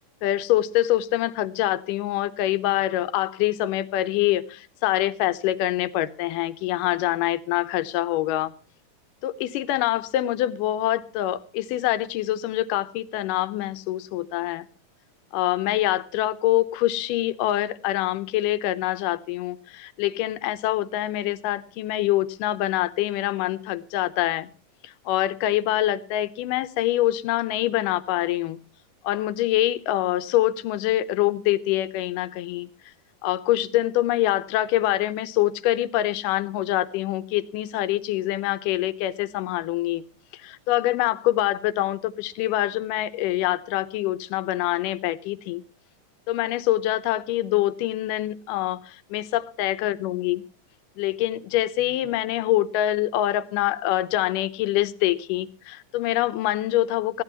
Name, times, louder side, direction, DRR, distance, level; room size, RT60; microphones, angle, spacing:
voice 1, 0.2-8.5 9.2-14.7 15.3-24.5 24.8-28.6 29.0-32.7 33.2-40.0 40.3-45.6 46.3-50.4 51.0-57.2, left 14 dB, 80° left, 2.4 m, -25 dB
20.0 x 15.0 x 2.9 m
omnidirectional pair, 3.9 m